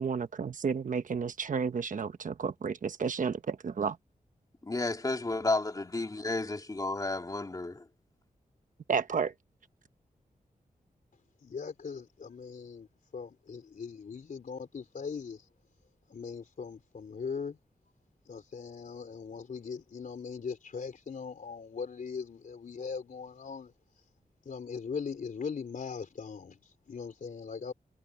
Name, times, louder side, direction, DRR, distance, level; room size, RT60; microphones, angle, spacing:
voice 1, 0.0-4.0 8.9-9.3, right 6 dB, 65° right, 1.1 m, -31 dB
voice 2, 4.6-7.8, left 2 dB, 25° left, 2.8 m, -32 dB
voice 3, 11.4-12.9 13.1-15.5 16.1-17.6 18.3-23.7 24.5-27.7, left 5 dB, 65° left, 3.6 m, -40 dB
wide cardioid pair, 140°, 15 cm